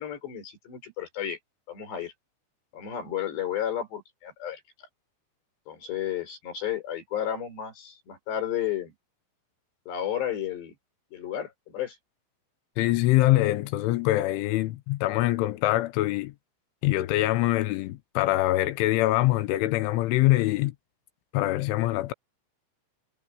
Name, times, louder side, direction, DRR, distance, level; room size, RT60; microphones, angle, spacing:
voice 1, 0.0-1.4 1.7-2.1 2.7-4.9 5.7-8.9 9.9-10.7 11.1-12.0, left 10 dB, 60° left, 6.8 m, -32 dB
voice 2, 12.8-16.3 16.8-20.7 21.3-22.1, left 16 dB, 80° left, 3.3 m, -24 dB
omnidirectional pair, 5.5 m